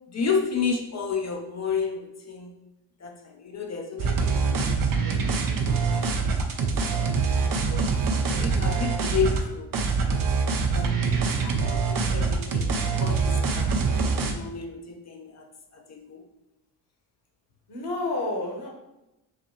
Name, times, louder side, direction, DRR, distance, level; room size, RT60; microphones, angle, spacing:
voice 1, 0.1-2.5 3.0-5.9 6.2-6.3 6.6-6.7 7.0-7.9 8.3-9.7 10.7-12.7 13.0-15.5 15.7-16.2, left 5 dB, 35° left, 2 dB, 0.6 m, -32 dB
sound 1, 4.0-9.4 9.7-14.3, right 4 dB, 45° right, 0.7 m, -24 dB
voice 2, 8.3-8.7 17.7-18.7, left 2 dB, 55° left, -1 dB, 1.4 m, -31 dB
5.4 x 2.2 x 3.0 m, 0.92 s
hypercardioid pair, 50°, 48 cm